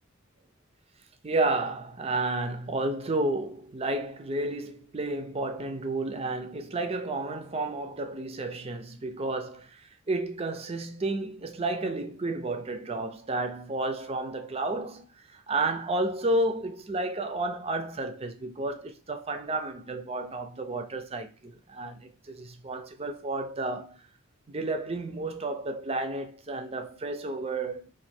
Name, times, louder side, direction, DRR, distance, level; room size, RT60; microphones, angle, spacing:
voice 1, 1.2-24.1 24.5-27.9, right 2 dB, 30° right, 0.5 m, -31 dB
3.0 x 2.5 x 4.2 m
head